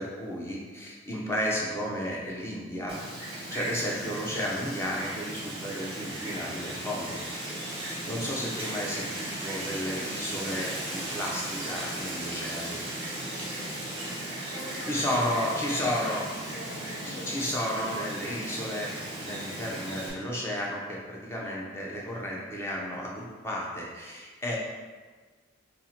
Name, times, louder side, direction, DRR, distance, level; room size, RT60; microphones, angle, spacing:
voice 1, 0.0-3.0 3.5-7.2 7.7-12.8 14.9-16.2 17.2-18.9 19.2-24.6, equal, 10° left, -3 dB, 0.5 m, -33 dB
Wind, 2.9-20.1, right 1 dB, 25° right, 0.7 m, -36 dB
voice 2, 14.4-16.2 16.5-17.4, left 1 dB, 60° left, -8 dB, 0.6 m, -43 dB
2.7 x 2.5 x 4.1 m, 1.4 s
head